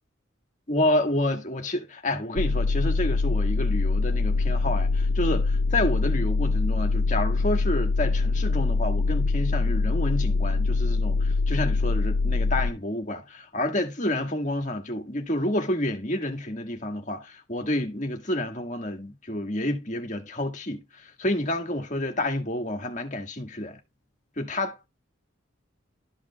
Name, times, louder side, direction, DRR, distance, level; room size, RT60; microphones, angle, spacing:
voice 1, 0.7-23.8 24.4-24.9, left 1 dB, 35° left, 1.6 m, -29 dB
sound 1, 2.4-12.7, left 3 dB, 70° left, 0.4 m, -24 dB
13.0 x 5.1 x 2.2 m
head